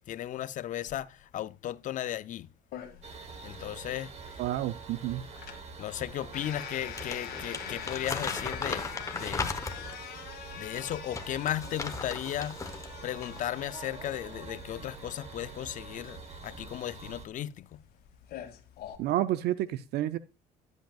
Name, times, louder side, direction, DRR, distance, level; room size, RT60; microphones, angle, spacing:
voice 1, 0.1-2.5 3.4-4.1 5.8-9.6 10.5-12.7 13.0-17.8, left 12 dB, 50° left, 0.4 m, -36 dB
sound 1, 2.7-19.0, left 10 dB, 70° left, 1.6 m, -45 dB
sound 2, 3.0-17.3, right 4 dB, 40° right, 1.2 m, -46 dB
voice 2, 4.4-5.2 19.0-20.2, right 13 dB, 75° right, 0.4 m, -30 dB
Crumpling crinkling, 6.8-10.0 10.6-12.9 13.2-13.4, left 4 dB, 20° left, 0.9 m, -37 dB
11.5 x 8.0 x 2.3 m
cardioid pair, 110°, 17 cm